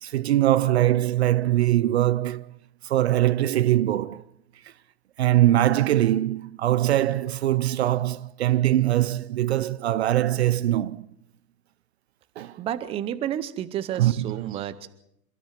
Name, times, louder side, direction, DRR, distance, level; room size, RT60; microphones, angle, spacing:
voice 1, 0.0-2.5 2.8-4.2 5.2-11.1 12.4-12.6 14.0-14.6, right 13 dB, 45° right, 0.7 m, -22 dB
voice 2, 12.6-14.9, right 11 dB, 15° right, 0.8 m, -31 dB
28.0 x 13.0 x 7.4 m
hypercardioid pair, 130°, 46 cm